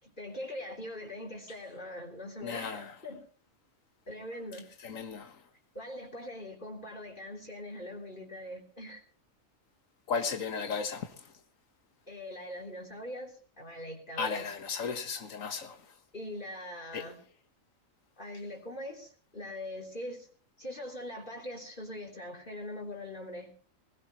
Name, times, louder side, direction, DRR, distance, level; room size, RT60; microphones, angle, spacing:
voice 1, 0.0-3.3 4.1-4.7 5.8-9.0 12.1-14.5 16.1-17.2 18.2-20.3 20.6-23.5, left 1 dB, 40° left, 3.5 m, -42 dB
voice 2, 2.4-2.9 4.8-5.3 10.1-11.1 14.2-15.8 16.9-17.0, left 5 dB, 90° left, 1.7 m, -34 dB
20.5 x 16.5 x 3.1 m
omnidirectional pair, 1.4 m